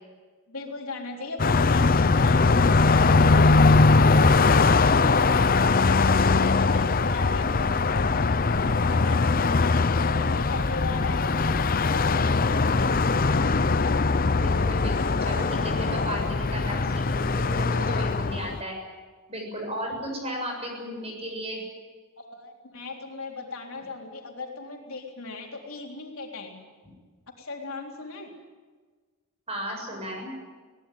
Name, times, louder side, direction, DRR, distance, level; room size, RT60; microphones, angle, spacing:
voice 1, 0.5-3.5 3.9-5.9 6.3-8.4 8.8-11.4 11.9-12.9 22.2-26.6 27.4-28.3, left 3 dB, 75° left, 0 dB, 3.8 m, -38 dB
Car passing by, 1.4-18.6, left 3 dB, 40° left, 0.7 m, -21 dB
voice 2, 14.4-18.7 19.3-21.6 29.5-30.3, equal, 30° right, 2 dB, 7.3 m, -34 dB
22.5 x 18.0 x 9.2 m, 1.4 s
head